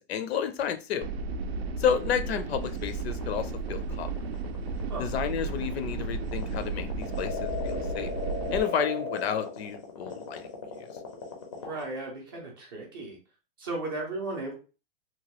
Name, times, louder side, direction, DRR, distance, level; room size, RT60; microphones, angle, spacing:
voice 1, 0.1-1.0 1.8-4.1 5.0-8.1 8.5-10.9, left 8 dB, 80° left, 10 dB, 0.6 m, -31 dB
sound 1, 1.0-8.6, right 4 dB, 75° right, 0.5 m, -34 dB
sound 2, 2.9-11.8, left 4 dB, 30° left, 0.4 m, -37 dB
voice 2, 11.5-13.2 13.6-14.5, right 2 dB, 25° right, -1 dB, 0.4 m, -35 dB
2.9 x 2.2 x 2.9 m, 0.34 s
supercardioid pair, 180°, 31 cm